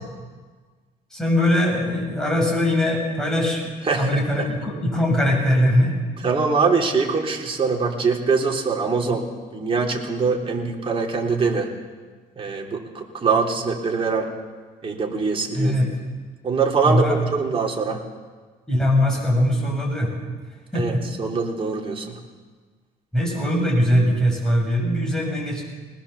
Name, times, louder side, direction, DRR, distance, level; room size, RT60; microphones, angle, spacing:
voice 1, 1.1-6.0 15.5-15.9 16.8-17.2 18.7-20.1 20.7-21.0 23.1-25.6, left 1 dB, 5° left, -2 dB, 7.2 m, -21 dB
voice 2, 3.9-4.5 6.2-9.2 9.5-11.7 12.4-14.3 14.8-15.7 16.4-18.0 20.7-22.2, right 4 dB, 35° right, 0 dB, 3.4 m, -23 dB
21.0 x 19.0 x 7.2 m, 1.4 s
cardioid pair, 110°, 17 cm